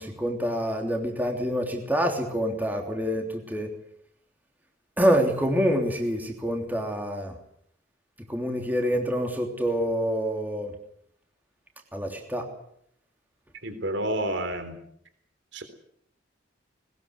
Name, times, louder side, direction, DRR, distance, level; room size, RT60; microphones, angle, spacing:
voice 1, 0.0-3.7 5.0-7.3 8.3-10.7 11.9-12.5, equal, 10° right, 2 dB, 3.2 m, -26 dB
voice 2, 13.6-14.8 15.5-15.6, right 1 dB, 65° right, 9 dB, 3.7 m, -29 dB
21.0 x 20.5 x 8.1 m, 0.69 s
head